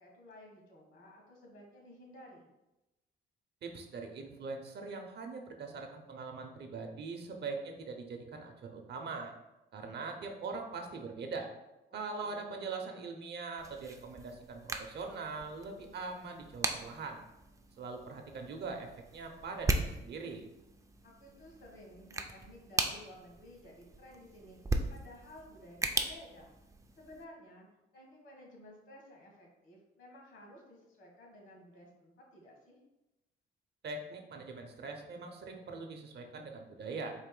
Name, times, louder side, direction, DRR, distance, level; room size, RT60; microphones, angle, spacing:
voice 1, 0.0-2.5 11.9-12.6 21.0-24.6 24.9-26.5 27.0-27.7 27.9-32.8, left 1 dB, 70° left, -1 dB, 1.5 m, -54 dB
voice 2, 3.6-9.3 9.7-11.5 11.9-17.2 17.8-20.4 33.8-37.1, right 4 dB, 55° right, 4 dB, 0.7 m, -42 dB
sound 1, 13.6-27.2, right 2 dB, 15° right, 0.4 m, -39 dB
4.1 x 2.6 x 3.8 m, 0.97 s
cardioid pair, 90°, 20 cm